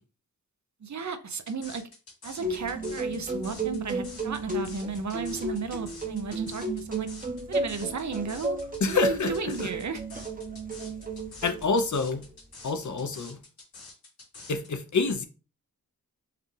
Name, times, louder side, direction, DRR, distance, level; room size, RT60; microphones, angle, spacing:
voice 1, 0.8-1.8 2.2-7.1 7.5-8.6 8.9-10.0, right 5 dB, 50° right, 0.5 m, -34 dB
sound 1, 1.3-14.7, left 3 dB, 85° left, 2.0 m, -47 dB
sound 2, 2.4-11.9, right 2 dB, 25° right, 0.8 m, -33 dB
voice 2, 8.8-9.3 9.6-9.7 11.4-12.2 12.6-13.4 14.5-15.3, left 4 dB, 55° left, 0.6 m, -27 dB
4.8 x 2.3 x 3.2 m
wide cardioid pair, 65°, 36 cm